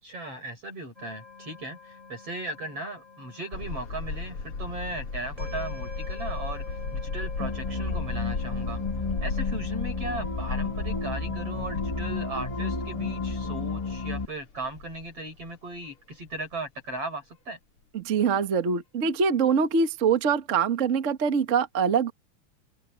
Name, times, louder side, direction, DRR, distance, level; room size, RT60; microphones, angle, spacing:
voice 1, 0.0-8.8 9.2-17.6, right 2 dB, 45° right, 6.1 m, -37 dB
sound 1, 1.0-14.0, left 3 dB, 15° right, 1.9 m, -47 dB
sound 2, 3.5-15.5 15.8-15.9 16.3-16.4, left 4 dB, 40° left, 4.0 m, -35 dB
sound 3, 7.4-14.2, left 3 dB, 25° left, 0.7 m, -32 dB
voice 2, 17.9-22.1, right 6 dB, 80° right, 0.6 m, -24 dB
open air
omnidirectional pair, 3.8 m